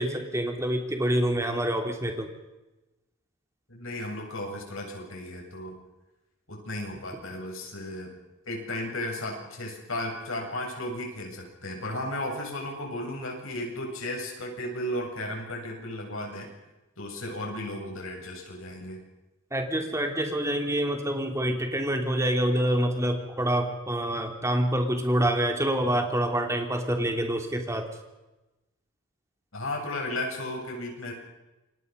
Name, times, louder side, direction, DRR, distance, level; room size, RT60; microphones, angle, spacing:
voice 1, 0.0-2.3 19.5-27.9, right 1 dB, 15° right, 4 dB, 3.1 m, -26 dB
voice 2, 3.7-5.8 6.5-8.1 8.4-16.5 17.0-19.0 29.5-31.1, left 1 dB, 75° left, 1 dB, 7.9 m, -34 dB
28.5 x 24.0 x 5.4 m, 1.0 s
head